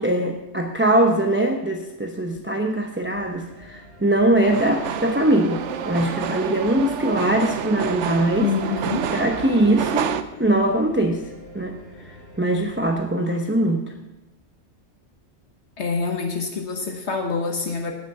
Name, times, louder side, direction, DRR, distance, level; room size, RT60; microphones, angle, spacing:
voice 1, 0.0-8.5 9.1-10.1 10.4-11.2 11.5-11.7 12.1-13.9, right 1 dB, 10° right, 3 dB, 0.8 m, -21 dB
sound 1, 3.0-13.0, right 1 dB, 55° right, 6.4 m, -46 dB
sound 2, 4.4-10.2, right 9 dB, 80° right, 1.0 m, -28 dB
voice 2, 8.4-9.1 15.8-17.9, left 5 dB, 70° left, 4 dB, 1.4 m, -26 dB
17.0 x 6.3 x 6.6 m, 1.0 s
omnidirectional pair, 1.2 m